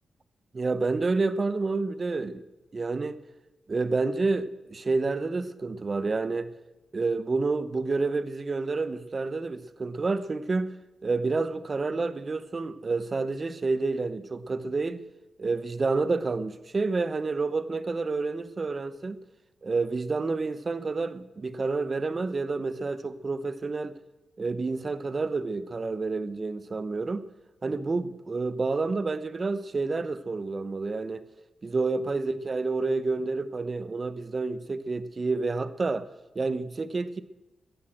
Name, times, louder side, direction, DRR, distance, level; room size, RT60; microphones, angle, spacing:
voice 1, 0.5-2.4 2.7-3.2 3.7-6.6 6.9-10.8 11.0-15.0 15.4-19.2 19.6-23.9 24.4-27.3 27.6-31.2 31.6-36.1 36.3-37.2, right 3 dB, 35° right, 0.8 m, -29 dB
14.0 x 10.0 x 7.8 m
cardioid pair, 85°, 0 cm